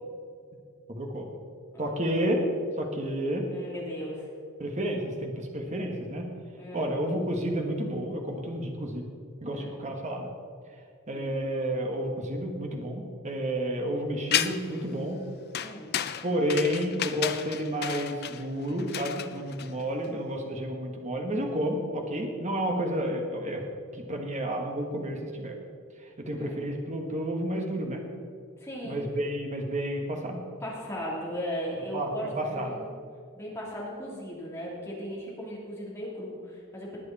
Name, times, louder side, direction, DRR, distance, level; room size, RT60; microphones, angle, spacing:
voice 1, 0.9-1.3 1.8-2.5 2.8-3.5 4.6-6.3 6.7-9.0 9.4-10.3 11.1-15.2 16.2-23.6 23.9-25.6 26.0-28.0 28.8-30.4 31.9-32.7, right 1 dB, 30° right, 2 dB, 1.5 m, -31 dB
voice 2, 3.5-4.3 6.5-6.9 9.5-9.7 11.1-11.4 13.3-13.4 15.6-15.9 26.4-26.6 28.6-29.0 30.6-32.9 33.3-37.0, equal, 10° left, -5 dB, 3.2 m, -37 dB
sound 1, 14.3-14.8 15.5-20.1, left 10 dB, 45° left, 0.5 m, -32 dB
19.5 x 7.9 x 4.2 m, 2.2 s
head